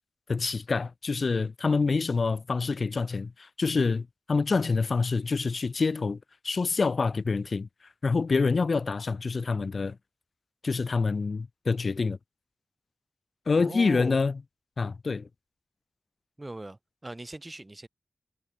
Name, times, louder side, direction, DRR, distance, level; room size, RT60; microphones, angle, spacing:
voice 1, 0.3-6.2 6.4-7.7 8.0-10.0 10.6-12.2 13.5-14.4 14.8-15.3, left 4 dB, 60° left, 1.2 m, -26 dB
voice 2, 13.5-14.2 16.4-17.9, right 2 dB, 25° right, 1.2 m, -40 dB
wide cardioid pair, 85°, 0 cm